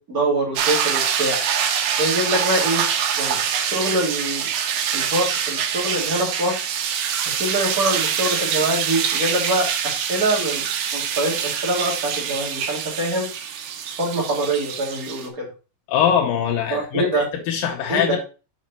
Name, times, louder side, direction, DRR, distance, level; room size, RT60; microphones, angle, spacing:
voice 1, 0.1-1.4 2.0-2.8 3.2-4.5 4.9-6.5 7.4-9.7 10.1-10.6 10.9-13.3 14.0-15.5 16.7-17.2 17.9-18.2, right 1 dB, 25° right, 2.7 m, -24 dB
sound 1, 0.6-15.3, right 8 dB, 80° right, 2.6 m, -25 dB
voice 2, 15.9-18.2, left 8 dB, 90° left, 2.6 m, -22 dB
6.4 x 5.1 x 4.1 m
omnidirectional pair, 3.9 m